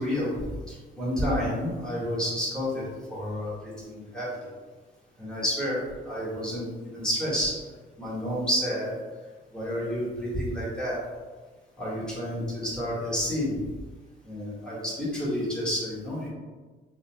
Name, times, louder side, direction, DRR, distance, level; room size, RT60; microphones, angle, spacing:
voice 1, 0.0-4.5 5.2-7.5 8.0-8.9 9.5-11.0 11.8-13.6 14.2-16.3, equal, 5° left, -8 dB, 1.2 m, -30 dB
2.7 x 2.0 x 3.0 m, 1.3 s
cardioid pair, 90°, 20 cm